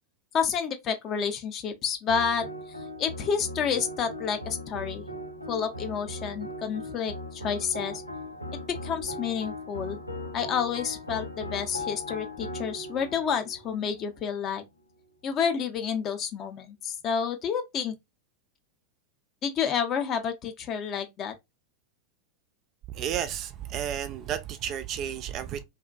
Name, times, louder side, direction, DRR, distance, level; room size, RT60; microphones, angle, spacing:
voice 1, 0.3-2.5 3.0-5.0 5.5-8.0 8.7-10.0 10.3-14.6 15.2-17.9 19.4-21.3, left 7 dB, 30° left, 0.4 m, -29 dB
sound 1, 2.1-14.6, left 1 dB, 90° left, 0.4 m, -39 dB
voice 2, 22.9-25.6, right 9 dB, 35° right, 0.3 m, -32 dB
2.5 x 2.1 x 2.3 m
figure-of-eight pair, 90°, 0 cm